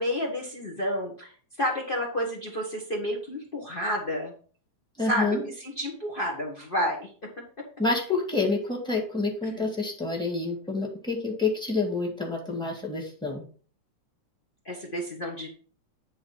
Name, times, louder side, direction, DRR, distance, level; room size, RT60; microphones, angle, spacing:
voice 1, 0.0-1.3 1.6-4.3 5.0-7.1 9.4-9.7 14.6-15.5, equal, 65° left, 0 dB, 0.5 m, -30 dB
voice 2, 5.0-5.4 7.8-13.4, left 3 dB, ahead, 0 dB, 1.2 m, -28 dB
9.6 x 4.0 x 5.7 m, 0.41 s
omnidirectional pair, 3.3 m